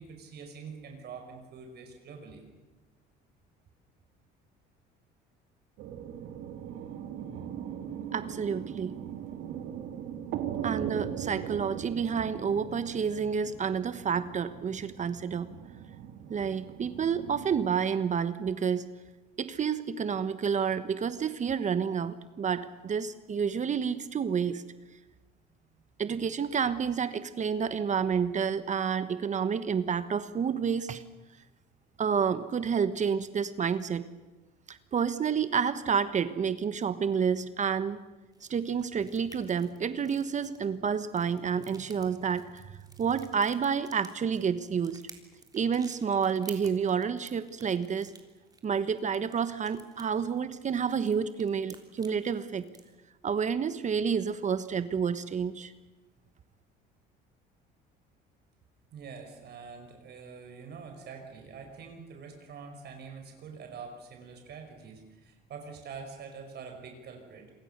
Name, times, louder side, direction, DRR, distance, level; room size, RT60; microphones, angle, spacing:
voice 1, 0.0-2.4 58.9-67.5, right 5 dB, 55° right, 4 dB, 5.1 m, -45 dB
sound 1, 5.8-17.7, right 9 dB, 75° right, 2.8 m, -39 dB
voice 2, 8.1-9.0 10.6-15.5 16.3-18.9 19.4-24.6 26.0-31.0 32.0-34.1 34.7-38.0 38.5-42.7 43.0-45.0 45.5-48.1 48.6-52.6 53.2-55.7, right 6 dB, 35° right, 12 dB, 1.3 m, -29 dB
sound 2, 38.3-52.9, right 3 dB, 20° right, 3.5 m, -54 dB
27.5 x 23.0 x 6.8 m, 1.1 s
cardioid pair, 100°, 20 cm